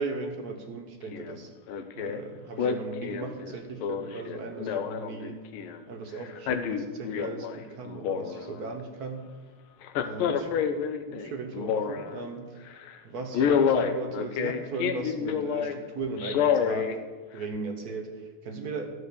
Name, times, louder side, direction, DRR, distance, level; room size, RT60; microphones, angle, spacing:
voice 1, 0.0-1.5 1.9-5.4 5.9-9.2 10.0-10.7 11.1-12.6 13.0-16.9 17.3-18.9, right 4 dB, 55° right, 4 dB, 1.3 m, -37 dB
Male speech man speaking, 1.1-1.4 1.7-2.2 2.6-5.8 6.2-7.6 7.9-8.7 9.8-12.2 12.7-12.9 13.3-15.7 16.2-17.0 17.4-17.5, left 7 dB, 90° left, 1.6 m, -28 dB
13.0 x 4.6 x 6.8 m, 1.4 s
omnidirectional pair, 2.3 m